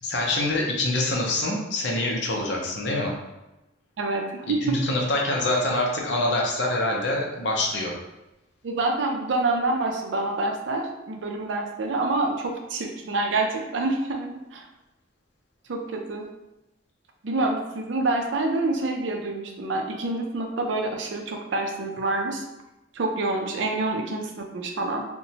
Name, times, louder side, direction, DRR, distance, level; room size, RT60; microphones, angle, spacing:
voice 1, 0.0-3.1 4.6-7.9, left 2 dB, 60° left, -1 dB, 0.5 m, -25 dB
voice 2, 4.0-4.8 8.6-14.7 15.7-16.2 17.2-22.4 22.9-25.0, right 2 dB, 70° right, 2 dB, 0.4 m, -27 dB
2.9 x 2.1 x 2.7 m, 0.96 s
head